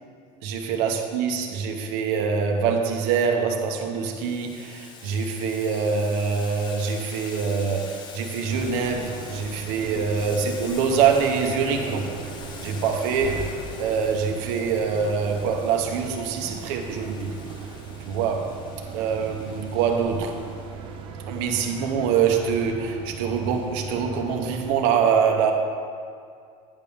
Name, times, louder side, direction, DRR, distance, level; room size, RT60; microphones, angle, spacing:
voice 1, 0.4-12.1 12.6-13.5 13.8-17.3 18.0-18.5 18.9-20.4 21.3-25.5, right 6 dB, 60° right, 3 dB, 0.8 m, -24 dB
Boiling, 4.0-20.8, left 5 dB, 25° left, 0.4 m, -44 dB
sound 1, 8.5-24.8, right 5 dB, 30° right, 0.5 m, -38 dB
9.8 x 3.4 x 6.9 m, 2.2 s
cardioid pair, 175°, 17 cm